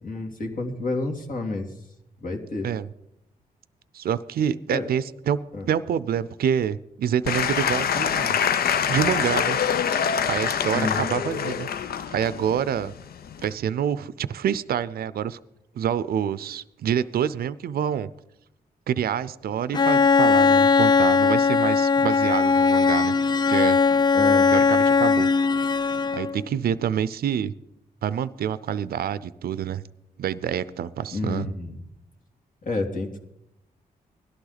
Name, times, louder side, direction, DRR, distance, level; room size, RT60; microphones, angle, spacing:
voice 1, 0.0-1.7 2.2-2.7 4.7-4.9 5.5-5.7 10.7-11.0 24.1-24.5 31.1-31.7 32.6-33.2, left 2 dB, 55° left, 3 dB, 2.6 m, -29 dB
voice 2, 3.9-5.4 5.6-8.4 8.9-11.7 12.1-12.9 13.4-15.4 15.8-18.1 18.9-23.1 23.5-23.8 24.5-25.3 26.1-27.5 28.0-29.8 30.2-31.5, right 9 dB, 75° right, 16 dB, 0.5 m, -27 dB
Applause / Crowd, 7.2-13.5, left 7 dB, 75° left, 0.7 m, -25 dB
Bowed string instrument, 19.7-26.4, left 4 dB, 25° left, 0.4 m, -19 dB
17.5 x 12.0 x 4.0 m, 0.82 s
cardioid pair, 65°, 16 cm